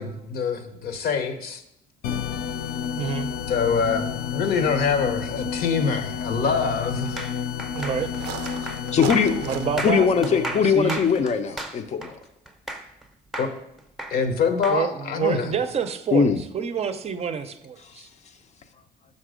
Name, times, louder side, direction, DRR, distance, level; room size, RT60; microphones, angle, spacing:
voice 1, 0.0-1.6 3.5-7.2 13.4-13.5 14.1-15.5, left 5 dB, 65° left, 8 dB, 0.9 m, -25 dB
sound 1, 2.0-11.4, left 8 dB, 85° left, 0.5 m, -31 dB
voice 2, 3.0-3.3 7.7-8.1 9.4-11.0 14.7-18.1, right 6 dB, 40° right, 9 dB, 0.5 m, -28 dB
sound 2, 5.4-5.6 6.0-6.1 7.7-10.0, right 11 dB, 90° right, 0.4 m, -38 dB
sound 3, 7.2-13.0 13.3-14.8, right 1 dB, ahead, 0.7 m, -34 dB
voice 3, 8.9-9.4 9.8-12.2 16.1-16.4, left 6 dB, 40° left, 9 dB, 0.6 m, -21 dB
5.8 x 5.3 x 5.0 m, 0.80 s
cardioid pair, 110°, 17 cm